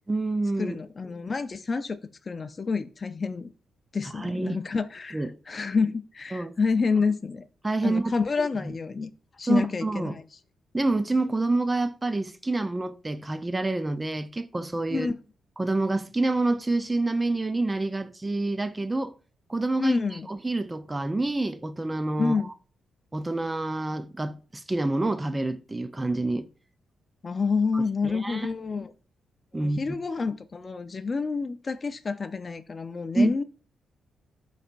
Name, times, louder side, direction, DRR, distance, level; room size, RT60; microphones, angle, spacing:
voice 1, 0.1-0.8 4.2-4.6 5.1-5.3 6.3-6.5 7.6-8.1 8.6-8.7 9.5-10.1 10.7-15.1 15.6-19.1 19.5-20.0 20.3-22.5 23.1-26.5 27.7-28.5 29.5-29.8 33.1-33.4, right 2 dB, 20° right, 0.5 m, -27 dB
voice 2, 0.6-2.0 2.3-3.5 3.9-7.4 7.8-9.1 9.4-10.2 14.9-15.1 19.8-20.3 22.2-22.5 27.2-28.9 29.5-33.4, left 4 dB, 35° left, 0.5 m, -28 dB
11.5 x 4.1 x 2.5 m
cardioid pair, 95°, 0 cm